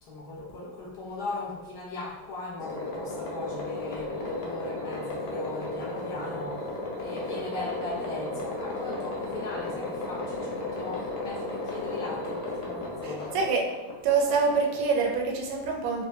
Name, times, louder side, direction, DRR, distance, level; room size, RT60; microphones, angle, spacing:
voice 1, 0.0-6.7 7.0-13.4, left 2 dB, 75° left, -6 dB, 1.5 m, -38 dB
sound 1, 2.6-15.2, left 2 dB, 60° left, 0.6 m, -34 dB
voice 2, 13.0-13.7 14.0-16.0, right 4 dB, 70° right, 1 dB, 1.0 m, -26 dB
4.2 x 2.2 x 2.6 m, 1.1 s
omnidirectional pair, 1.8 m